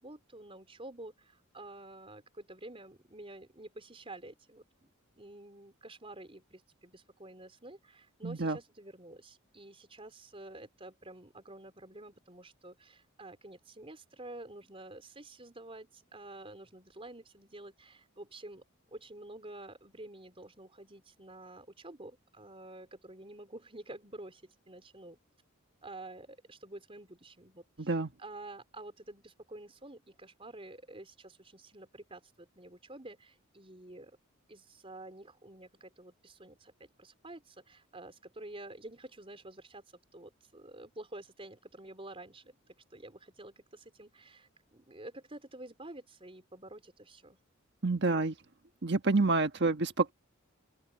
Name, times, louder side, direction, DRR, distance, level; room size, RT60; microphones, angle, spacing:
voice 1, 0.0-4.9 5.2-18.6 18.9-25.2 25.8-34.1 34.5-39.8 40.1-42.6 42.9-47.4, right 2 dB, 25° right, 4.3 m, -49 dB
voice 2, 8.2-8.6 27.9-28.1 47.8-48.3 48.8-50.1, right 3 dB, 55° right, 1.3 m, -28 dB
open air
head